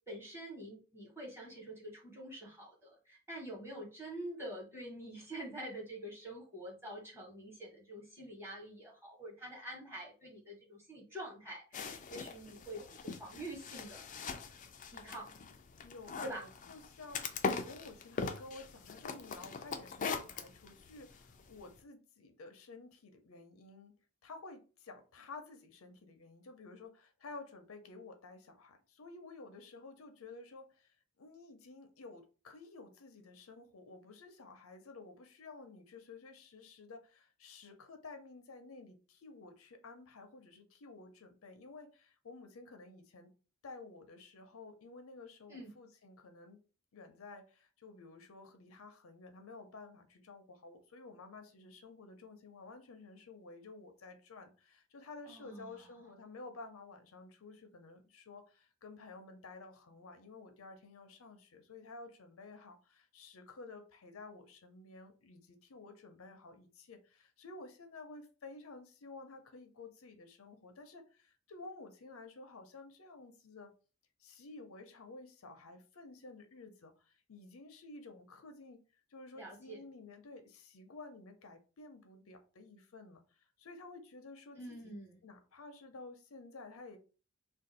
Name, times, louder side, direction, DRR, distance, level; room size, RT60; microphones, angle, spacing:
voice 1, 0.1-14.1 14.9-15.3 16.2-16.4 45.5-45.7 55.3-55.9 79.3-79.8 84.5-85.2, right 1 dB, 10° right, 1.2 m, -46 dB
sound 1, 11.7-21.8, left 5 dB, 40° left, 0.4 m, -42 dB
voice 2, 15.8-23.9 24.2-43.3 43.6-46.6 46.9-73.7 74.2-78.8 79.1-84.9 85.2-87.0, left 3 dB, 80° left, 0.6 m, -52 dB
2.6 x 2.3 x 3.9 m
head